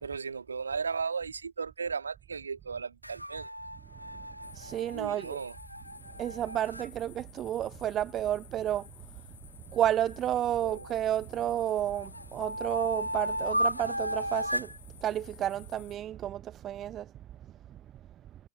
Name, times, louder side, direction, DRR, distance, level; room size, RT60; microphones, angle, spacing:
voice 1, 0.0-3.5 4.9-5.5 10.6-10.9, right 5 dB, 75° right, 1.6 m, -35 dB
sound 1, 3.0-6.9 9.8-11.1 11.6-14.8, equal, 90° right, 0.5 m, -35 dB
sound 2, 4.4-16.0, left 11 dB, 60° left, 6.2 m, -53 dB
voice 2, 4.5-5.4 6.1-9.2 9.7-14.7 15.0-17.1 17.7-17.8, right 11 dB, 30° right, 0.5 m, -31 dB
figure-of-eight pair, 90°, 0 cm